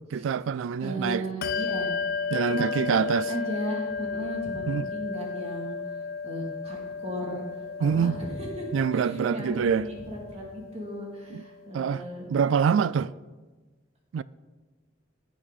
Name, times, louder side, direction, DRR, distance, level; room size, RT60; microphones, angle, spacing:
voice 1, 0.1-1.2 2.3-3.3 4.7-4.9 7.8-8.2 8.7-9.8 11.3-11.4 11.7-12.0 12.3-13.1 14.1-14.2, right 7 dB, 75° right, 0.3 m, -25 dB
voice 2, 0.8-1.9 2.5-5.8 6.2-7.4 7.8-12.3, equal, 35° right, 2.6 m, -36 dB
Bell, 1.4-11.4, left 5 dB, 50° left, 0.5 m, -34 dB
18.0 x 6.1 x 4.1 m
head